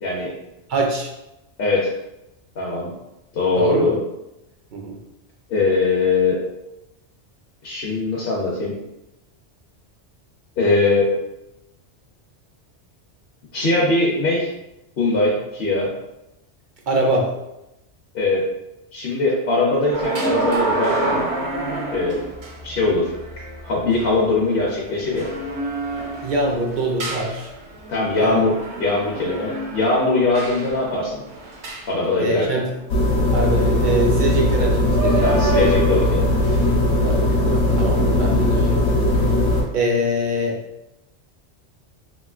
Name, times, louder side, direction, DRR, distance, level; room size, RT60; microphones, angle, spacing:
voice 1, 0.0-0.3 1.6-1.9 2.6-2.9 3.3-4.0 5.5-6.4 7.6-8.7 10.6-11.1 13.5-14.5 15.0-15.9 18.1-18.5 18.9-21.2 21.9-22.2 22.6-23.1 23.6-25.3 27.9-31.2 31.9-32.6 35.2-36.3, left 3 dB, 60° left, -5 dB, 0.8 m, -21 dB
voice 2, 0.7-1.1 3.6-3.9 4.7-5.0 16.9-17.3 26.2-27.5 28.2-28.4 32.2-32.7 33.3-35.2 37.0-38.9 39.7-40.6, right 1 dB, 55° right, 0 dB, 0.6 m, -23 dB
sound 1, 19.9-32.7 34.4-34.6 34.9-36.7 37.4-37.6, right 2 dB, 75° right, 1.0 m, -28 dB
sound 2, 32.9-39.6, left 1 dB, 90° left, 1.1 m, -19 dB
3.0 x 3.0 x 2.4 m, 0.90 s
omnidirectional pair, 1.2 m